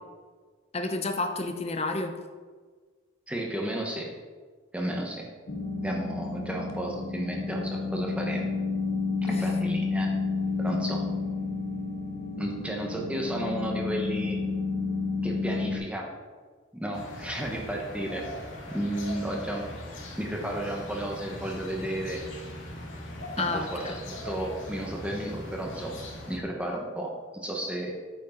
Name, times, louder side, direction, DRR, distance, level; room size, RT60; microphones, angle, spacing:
voice 1, 0.7-2.1 9.3-9.4 23.4-23.9, left 2 dB, 30° left, 6 dB, 0.8 m, -30 dB
voice 2, 3.3-4.1 4.7-5.3 5.8-8.5 9.2-10.1 10.6-11.2 12.4-14.4 15.2-16.0 16.7-18.3 18.7-19.6 20.2-22.2 23.3-26.0 26.3-27.1 27.4-27.9, right 1 dB, 5° right, 0 dB, 1.3 m, -33 dB
sound 1, 5.5-15.8, left 4 dB, 50° left, 1.3 m, -31 dB
sound 2, 16.9-26.4, left 1 dB, 80° left, 2.1 m, -40 dB
8.8 x 8.4 x 4.0 m, 1.5 s
head